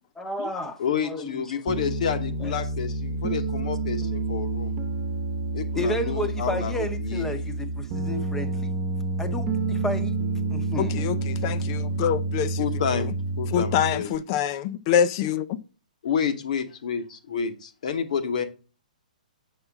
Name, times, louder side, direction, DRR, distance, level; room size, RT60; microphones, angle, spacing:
voice 1, 0.2-1.4 1.7-1.9 2.4-2.7 5.7-8.7 9.2-10.2 10.5-11.0, left 1 dB, 10° left, 1.0 m, -32 dB
voice 2, 0.8-4.8 5.5-7.3 12.6-14.1 16.0-18.5, left 7 dB, 60° left, 1.2 m, -29 dB
Piano, 1.7-14.2, right 3 dB, 35° right, 1.1 m, -29 dB
voice 3, 10.8-12.6 13.0-13.1 13.5-15.6, left 9 dB, 35° left, 0.6 m, -25 dB
7.8 x 5.8 x 3.5 m
figure-of-eight pair, 125°, 5 cm